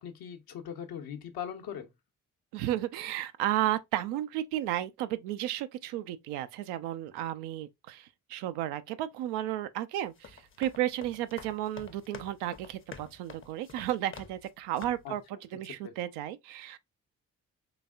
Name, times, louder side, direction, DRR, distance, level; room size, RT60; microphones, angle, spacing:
voice 1, 0.0-1.9 15.0-15.1 15.8-15.9, left 8 dB, 65° left, 0.9 m, -40 dB
voice 2, 2.5-16.8, right 13 dB, 75° right, 0.5 m, -33 dB
sound 1, 10.1-14.5 14.8-15.1, left 5 dB, 30° left, 0.7 m, -49 dB
3.9 x 3.4 x 2.4 m
hypercardioid pair, 40°, 40 cm